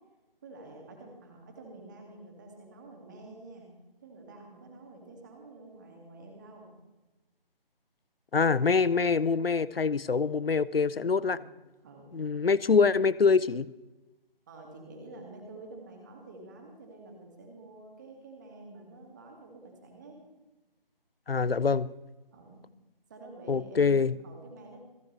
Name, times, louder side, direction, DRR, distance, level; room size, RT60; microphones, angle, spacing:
voice 1, 0.4-3.7 4.0-6.7 11.2-11.5 11.8-12.1 14.5-20.2 22.3-22.6 23.1-24.8, right 2 dB, 20° right, 2 dB, 2.3 m, -49 dB
voice 2, 8.3-11.4 12.1-13.7 21.3-21.9 23.5-24.1, left 5 dB, 80° left, 20 dB, 0.6 m, -25 dB
28.0 x 9.6 x 3.3 m, 1.1 s
figure-of-eight pair, 155°, 29 cm